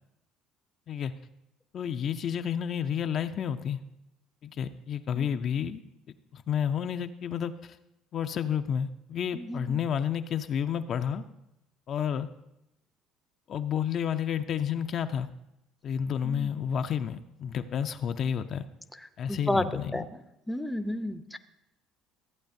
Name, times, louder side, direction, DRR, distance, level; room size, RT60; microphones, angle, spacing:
voice 1, 1.7-3.8 4.4-5.8 6.3-7.8 8.1-11.3 11.9-12.3 13.5-15.3 15.8-18.6 19.2-20.0, left 8 dB, 50° left, 8 dB, 0.4 m, -30 dB
voice 2, 9.3-9.8 16.2-16.5 19.3-19.6 19.9-20.1 20.5-21.4, left 1 dB, 5° left, 10 dB, 0.5 m, -31 dB
14.0 x 8.2 x 2.6 m, 0.88 s
supercardioid pair, 85°, 0 cm